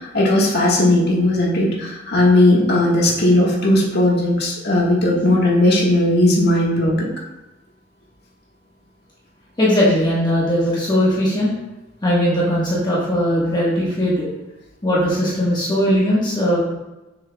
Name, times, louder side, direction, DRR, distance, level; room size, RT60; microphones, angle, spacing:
voice 1, 0.1-7.1, left 1 dB, 55° left, -3 dB, 1.6 m, -17 dB
voice 2, 9.6-11.5 12.0-14.3 14.8-16.6, equal, 25° left, -7 dB, 1.4 m, -19 dB
6.7 x 6.4 x 2.3 m, 1.0 s
head